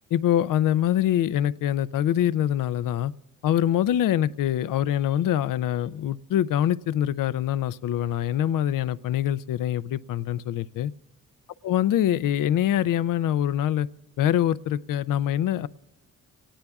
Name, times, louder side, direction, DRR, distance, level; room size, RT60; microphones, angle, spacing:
voice 1, 0.1-3.1 3.4-10.9 11.6-13.9 14.2-15.7, left 11 dB, 70° left, 17 dB, 0.5 m, -24 dB
27.0 x 19.0 x 2.4 m, 0.92 s
supercardioid pair, 60°, 34 cm